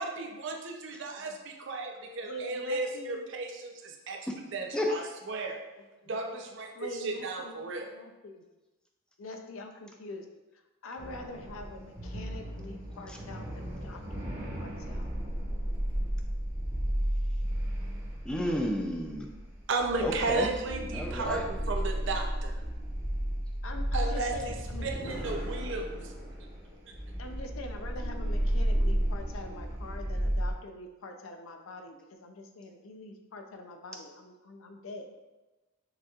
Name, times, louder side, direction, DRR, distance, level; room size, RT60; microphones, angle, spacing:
voice 1, 0.0-4.2 4.5-5.6 6.1-7.9 19.7-22.5 23.9-24.6 24.8-25.9, right 3 dB, 60° right, 2 dB, 0.5 m, -34 dB
voice 2, 2.2-3.3 6.0-6.2 6.7-8.5 9.2-10.3 10.5-15.1 23.6-25.2 27.2-35.1, left 2 dB, 75° left, 5 dB, 0.5 m, -44 dB
sound 1, 11.0-30.5, equal, 25° right, 1.3 m, -33 dB
voice 3, 18.3-19.3 20.0-20.5 20.9-21.4, equal, 5° left, 1 dB, 0.4 m, -31 dB
6.5 x 2.9 x 2.4 m, 1.1 s
head